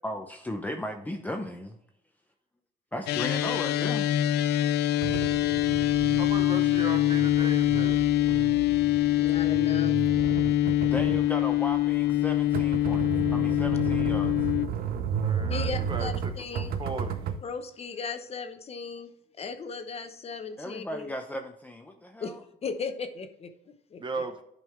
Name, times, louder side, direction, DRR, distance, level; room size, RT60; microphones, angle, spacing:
voice 1, 0.0-1.7 2.9-4.1 10.9-13.1 13.3-14.3 20.6-22.4, left 1 dB, 10° left, 3 dB, 0.7 m, -36 dB
sound 1, 3.1-14.7, left 14 dB, 80° left, 0.5 m, -24 dB
sound 2, 5.0-17.4, right 7 dB, 60° right, 0.8 m, -34 dB
voice 2, 5.9-8.4 15.2-17.2 24.0-24.4, right 3 dB, 30° right, 8 dB, 1.0 m, -37 dB
voice 3, 9.2-10.1 10.6-10.7 15.5-16.7 17.4-19.1 19.4-21.1 22.2-22.3 22.6-24.2, left 5 dB, 35° left, 8 dB, 0.9 m, -37 dB
10.5 x 5.4 x 3.2 m, 0.74 s
cardioid pair, 110°, 17 cm